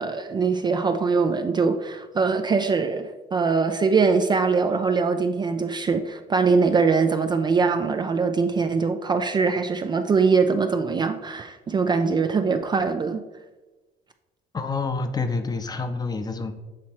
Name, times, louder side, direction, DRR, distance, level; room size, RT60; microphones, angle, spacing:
voice 1, 0.0-13.2, right 4 dB, 25° right, 7 dB, 0.3 m, -22 dB
voice 2, 14.5-16.5, left 4 dB, 25° left, 8 dB, 0.6 m, -28 dB
7.4 x 3.1 x 4.3 m, 1.2 s
cardioid pair, 110°, 17 cm